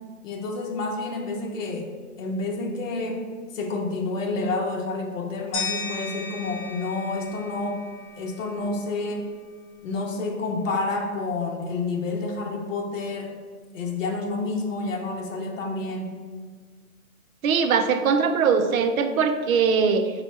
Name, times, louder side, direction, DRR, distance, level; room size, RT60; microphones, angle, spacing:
voice 1, 0.2-1.9 2.2-3.2 3.5-7.8 8.2-9.2 9.8-13.3 13.7-16.2, left 3 dB, 60° left, 1 dB, 0.8 m, -29 dB
sound 1, 5.5-8.5, left 4 dB, 25° left, 0.9 m, -35 dB
voice 2, 17.4-20.1, right 6 dB, 70° right, 8 dB, 0.5 m, -21 dB
4.2 x 2.3 x 4.3 m, 1.5 s
hypercardioid pair, 165°, 44 cm